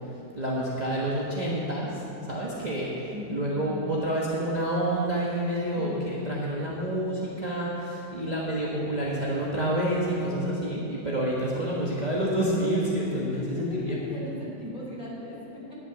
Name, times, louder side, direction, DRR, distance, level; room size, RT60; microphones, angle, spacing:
voice 1, 0.0-14.1, right 1 dB, 25° right, -6 dB, 1.3 m, -28 dB
voice 2, 3.1-3.9 5.7-6.8 11.5-11.6 13.3-15.8, left 1 dB, 25° left, -6 dB, 2.9 m, -38 dB
10.5 x 6.6 x 9.3 m, 2.9 s
omnidirectional pair, 1.9 m